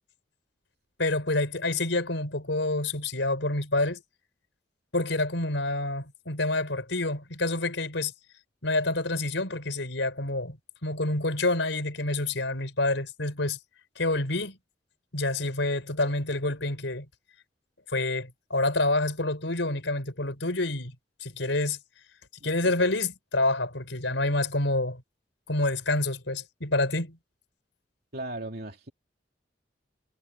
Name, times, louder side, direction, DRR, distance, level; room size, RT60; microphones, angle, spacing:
voice 1, 1.0-4.0 4.9-8.1 8.6-13.6 14.0-14.6 15.1-17.1 17.9-20.9 21.2-21.8 22.4-25.0 25.5-27.2, left 2 dB, 85° left, 4.9 m, -28 dB
voice 2, 28.1-28.9, right 1 dB, 60° right, 2.8 m, -37 dB
head